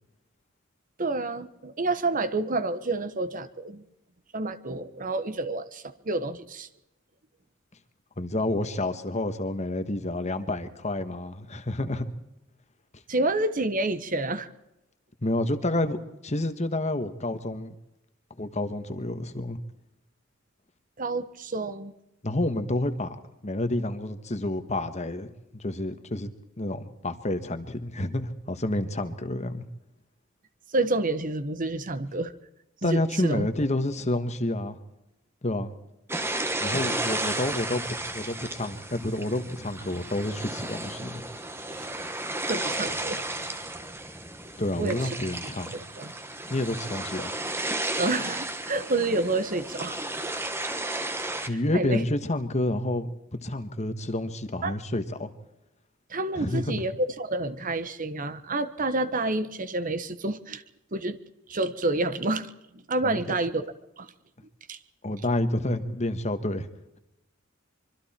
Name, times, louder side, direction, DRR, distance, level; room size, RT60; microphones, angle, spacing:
voice 1, 1.0-3.8 4.3-6.7 13.1-14.5 21.0-21.9 30.7-32.3 32.8-33.5 41.7-41.9 42.5-43.2 44.8-45.0 45.4-46.1 48.0-49.9 51.7-52.0 54.6-54.7 56.1-60.6 60.9-61.2 61.5-62.5 62.7-64.1 64.7-64.8, right 2 dB, 40° right, 11 dB, 1.2 m, -29 dB
voice 2, 8.2-12.1 15.2-16.0 16.2-17.7 18.4-19.6 22.2-23.2 23.4-25.3 25.5-26.3 26.6-29.6 32.8-34.8 35.4-35.7 36.6-37.8 38.1-41.2 44.6-45.8 46.5-47.3 51.5-53.1 53.4-55.3 56.4-56.8 63.0-63.2 65.0-66.7, left 1 dB, 35° left, 10 dB, 1.5 m, -29 dB
sound 1, 36.1-51.5, right 2 dB, 10° right, 1.6 m, -33 dB
25.0 x 24.5 x 4.5 m, 0.89 s
head